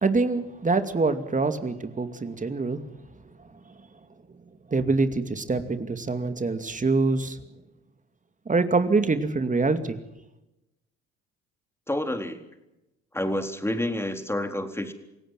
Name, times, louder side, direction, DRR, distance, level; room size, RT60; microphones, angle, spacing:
voice 1, 0.0-2.8 4.7-7.4 8.5-10.0, right 3 dB, 25° right, 9 dB, 2.5 m, -25 dB
voice 2, 11.9-12.4 13.1-14.9, left 1 dB, 10° left, 6 dB, 4.1 m, -28 dB
28.5 x 17.0 x 7.7 m, 0.92 s
hypercardioid pair, 65°, 32 cm